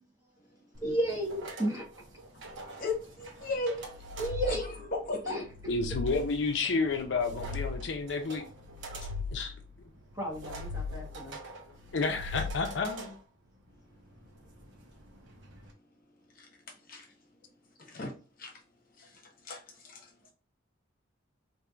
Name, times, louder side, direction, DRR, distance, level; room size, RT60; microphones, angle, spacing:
sound 1, 0.7-15.7, right 2 dB, 70° right, 0.9 m, -48 dB
voice 1, 0.8-1.8 4.2-4.8 5.2-5.4 10.2-11.4, right 1 dB, 20° right, -2 dB, 1.2 m, -33 dB
voice 2, 2.8-3.8 4.4-4.6 4.9-5.4 16.4-16.5 16.9-17.1 17.8-18.1 18.4-18.5 19.0-19.1 19.4-20.0, left 2 dB, 50° left, 2 dB, 1.0 m, -35 dB
sound 2, 3.8-4.9 5.4-6.5 7.0-8.1 8.6-9.7 10.2-11.3 11.8-12.9, left 4 dB, 35° right, 0.3 m, -39 dB
voice 3, 5.7-8.4 9.3-9.5 11.9-13.1, left 4 dB, 65° left, 5 dB, 0.5 m, -30 dB
4.4 x 2.6 x 2.4 m, 0.36 s
head